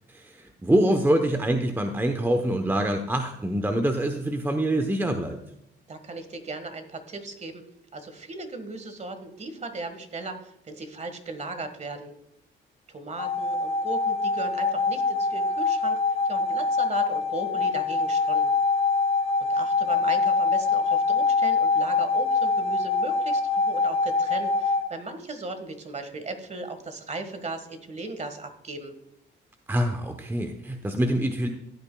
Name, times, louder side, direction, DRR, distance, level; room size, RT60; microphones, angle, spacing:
voice 1, 0.1-5.4 29.7-31.5, right 1 dB, 10° right, 6 dB, 0.9 m, -25 dB
voice 2, 5.9-7.6 7.9-12.1 12.9-16.0 16.3-18.5 19.4-28.9, right 3 dB, 35° right, 8 dB, 1.6 m, -37 dB
sound 1, 13.2-24.9, left 4 dB, 30° left, 2.8 m, -24 dB
15.5 x 8.7 x 2.3 m, 0.80 s
cardioid pair, 90°, 20 cm